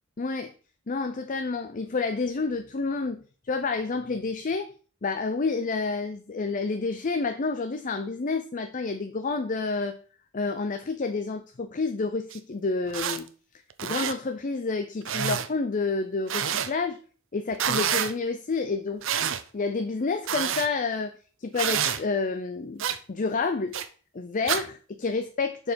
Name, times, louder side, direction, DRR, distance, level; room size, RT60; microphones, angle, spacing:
voice 1, 0.2-0.5 0.9-4.7 5.0-10.0 10.3-13.3 13.8-17.0 17.3-19.0 19.5-21.1 21.4-23.7 24.1-25.7, left 4 dB, 40° left, 8 dB, 0.5 m, -29 dB
sound 1, 12.3-12.4 12.9-13.2 13.7-14.1 15.1-15.5 16.3-16.7 17.5-18.1 19.0-19.4 20.3-20.7 21.6-22.0 22.8-23.0 23.7-23.9 24.5-24.6, right 8 dB, 65° right, 0.7 m, -27 dB
6.6 x 4.8 x 5.2 m, 0.39 s
head